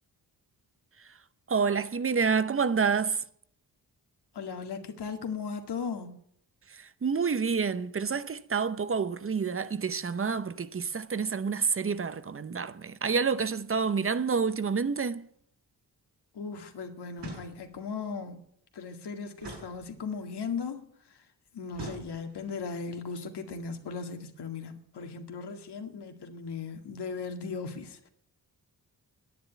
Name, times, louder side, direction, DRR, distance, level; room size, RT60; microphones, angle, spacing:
voice 1, 1.5-3.2 7.0-15.2, right 5 dB, 35° right, 0.8 m, -28 dB
voice 2, 4.3-6.1 16.3-18.4 18.7-21.2 21.5-28.1, left 5 dB, 75° left, 2.1 m, -37 dB
sound 1, 17.2-17.9 19.4-20.3 21.7-22.6, right 2 dB, 80° right, 6.3 m, -44 dB
10.5 x 9.6 x 9.1 m
wide cardioid pair, 100°, 40 cm